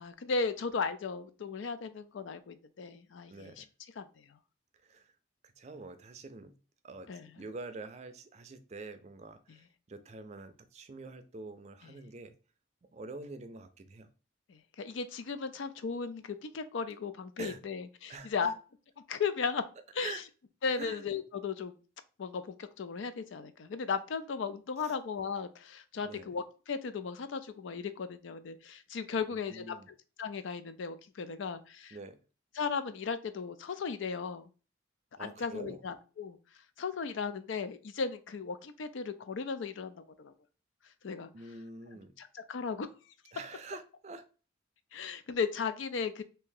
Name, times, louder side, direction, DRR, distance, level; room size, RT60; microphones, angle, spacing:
voice 1, 0.0-3.6 4.0-4.1 7.1-7.3 14.5-18.5 19.1-19.6 20.0-20.1 20.6-21.7 22.2-29.8 30.2-32.0 32.6-34.5 35.2-36.4 36.8-40.3 41.0-41.3 42.2-42.9 44.9-46.2, left 5 dB, 85° left, 11 dB, 0.4 m, -36 dB
voice 2, 3.3-3.7 4.8-5.1 5.4-6.5 6.8-12.3 12.9-14.1 17.4-17.6 18.1-18.5 20.0-20.2 20.8-21.0 24.8-25.0 26.0-26.3 29.3-29.9 31.9-32.2 35.2-35.8 41.3-42.1 43.3-44.2, right 3 dB, 35° right, 9 dB, 0.4 m, -46 dB
2.8 x 2.6 x 3.7 m, 0.35 s
head